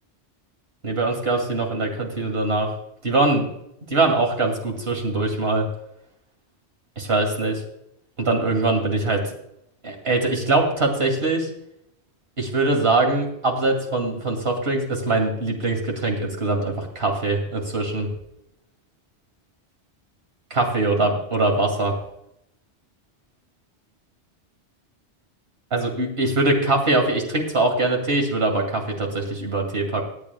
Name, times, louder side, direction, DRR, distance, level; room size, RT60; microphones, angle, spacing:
voice 1, 0.8-2.7 3.0-3.5 3.9-5.7 7.0-7.6 8.2-9.2 9.8-11.5 12.4-18.1 20.5-21.9 25.7-30.0, right 2 dB, 65° right, 2 dB, 2.6 m, -22 dB
24.0 x 8.5 x 2.3 m, 0.78 s
omnidirectional pair, 1.1 m